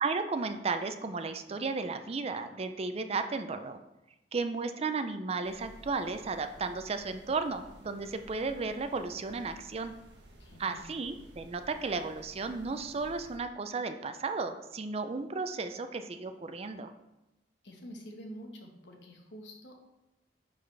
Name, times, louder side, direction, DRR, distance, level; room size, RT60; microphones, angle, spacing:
voice 1, 0.0-3.8 4.3-9.9 10.6-16.9, right 4 dB, 35° right, 9 dB, 0.4 m, -34 dB
sound 1, 5.4-13.4, equal, 75° right, 1.1 m, -55 dB
voice 2, 10.4-10.9 17.6-19.7, equal, 85° left, 2 dB, 1.3 m, -47 dB
10.0 x 3.9 x 3.3 m, 0.96 s
head